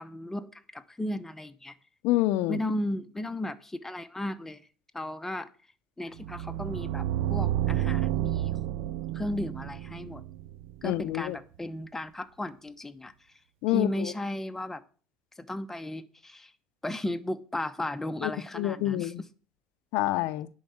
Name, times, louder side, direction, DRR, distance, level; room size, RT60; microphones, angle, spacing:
voice 1, 0.0-1.7 2.5-4.6 4.9-5.5 6.0-8.5 9.1-10.2 10.8-13.1 13.7-14.8 15.4-16.5 16.8-19.3, left 1 dB, 10° left, 0.9 m, -35 dB
voice 2, 2.0-2.6 10.8-11.4 13.6-14.1 18.2-19.2 19.9-20.5, left 16 dB, 75° left, 0.6 m, -27 dB
sound 1, 6.2-11.1, right 13 dB, 75° right, 0.6 m, -30 dB
10.5 x 4.8 x 7.9 m
supercardioid pair, 95°, 4 cm